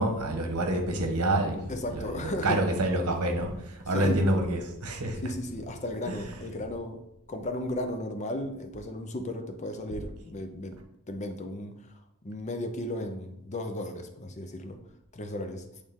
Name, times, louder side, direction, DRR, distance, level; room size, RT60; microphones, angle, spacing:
voice 1, 0.0-1.7 1.9-5.2, right 1 dB, 85° right, 4 dB, 1.1 m, -27 dB
voice 2, 1.7-2.6 3.9-4.2 5.2-7.0 7.3-10.8 11.1-14.8 15.1-15.7, left 1 dB, 30° left, 6 dB, 0.6 m, -35 dB
8.4 x 3.3 x 3.6 m, 0.81 s
head